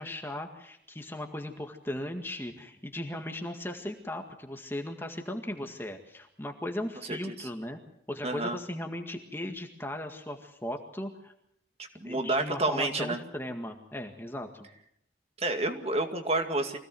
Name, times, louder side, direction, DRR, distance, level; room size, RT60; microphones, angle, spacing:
voice 1, 0.0-7.8 8.1-11.3 12.0-14.7, left 1 dB, 10° left, 3 dB, 1.9 m, -37 dB
voice 2, 7.0-7.5 8.2-8.6 11.8-13.2 15.4-16.8, right 2 dB, 30° right, 6 dB, 2.2 m, -30 dB
24.5 x 17.0 x 7.8 m, 0.73 s
head